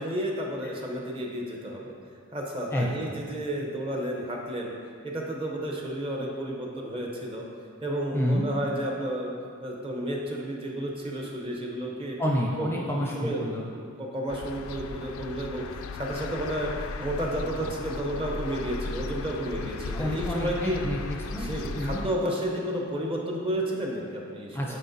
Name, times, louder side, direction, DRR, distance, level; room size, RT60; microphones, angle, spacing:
voice 1, 0.0-1.9 2.3-4.7 5.0-7.4 7.8-9.3 9.6-12.2 12.6-12.8 13.1-13.4 13.7-20.8 21.4-24.8, right 1 dB, 25° right, -1 dB, 0.8 m, -32 dB
voice 2, 8.1-8.5 12.2-13.7 19.9-21.5 21.8-22.0 24.5-24.8, equal, 10° left, -2 dB, 0.5 m, -29 dB
sound 1, 14.3-22.1, left 3 dB, 75° left, 0.3 m, -36 dB
9.9 x 4.4 x 2.7 m, 2.1 s
head